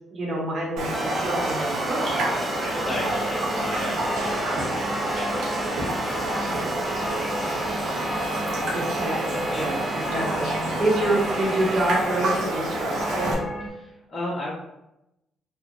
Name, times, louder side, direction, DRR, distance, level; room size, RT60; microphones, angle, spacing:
voice 1, 0.1-2.1 8.5-13.3, right 1 dB, 45° right, -4 dB, 0.9 m, -27 dB
Raindrop, 0.8-13.3, right 2 dB, 80° right, 0.6 m, -28 dB
sound 1, 0.9-11.9, equal, ahead, 0.3 m, -36 dB
voice 2, 2.1-5.8 6.1-7.5 9.4-9.7 13.7-14.5, left 1 dB, 35° left, -6 dB, 1.3 m, -35 dB
sound 2, 2.4-13.7, equal, 65° left, 0.5 m, -34 dB
2.8 x 2.1 x 2.5 m, 0.87 s
cardioid pair, 90°, 0 cm